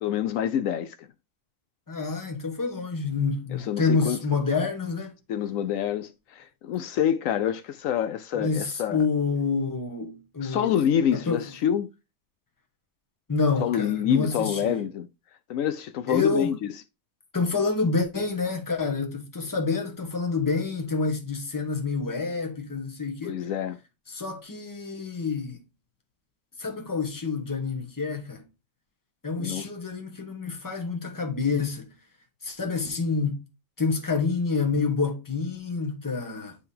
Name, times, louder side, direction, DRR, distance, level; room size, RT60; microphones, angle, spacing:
voice 1, 0.0-1.1 3.7-4.2 5.3-9.0 10.4-11.9 13.6-15.1 15.5-16.6 23.2-23.8 29.4-29.7, left 9 dB, 75° left, 1.0 m, -26 dB
voice 2, 1.9-5.1 8.3-10.7 11.1-11.5 13.3-14.8 16.1-16.5 17.3-23.5 24.1-25.6 26.6-28.4 29.2-31.9 32.4-33.4 33.8-36.6, left 4 dB, 15° left, 1.2 m, -28 dB
9.7 x 3.6 x 2.7 m
omnidirectional pair, 1.4 m